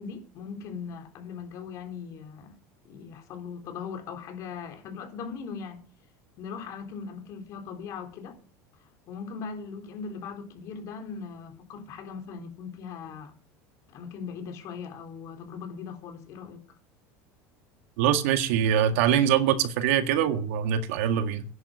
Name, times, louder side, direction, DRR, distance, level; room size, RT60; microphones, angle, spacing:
voice 1, 0.0-2.6 2.8-5.8 6.4-8.4 9.1-13.3 13.9-16.6, left 6 dB, 50° left, 3.9 m, -39 dB
voice 2, 18.0-21.4, right 9 dB, 80° right, 1.9 m, -23 dB
10.5 x 9.5 x 8.0 m
supercardioid pair, 135°, 7 cm